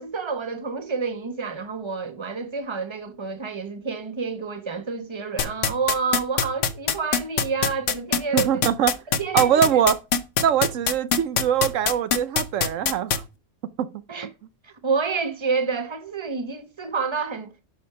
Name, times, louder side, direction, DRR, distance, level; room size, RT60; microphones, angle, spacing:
voice 1, 0.0-8.6 9.2-9.8 14.1-14.3 14.6-17.5, right 5 dB, 25° right, 1.1 m, -29 dB
sound 1, 5.4-13.2, left 7 dB, 70° left, 1.3 m, -21 dB
voice 2, 8.3-9.0 9.3-10.0 10.4-13.2 13.8-13.9, right 9 dB, 85° right, 1.1 m, -22 dB
11.5 x 5.3 x 5.7 m
omnidirectional pair, 1.3 m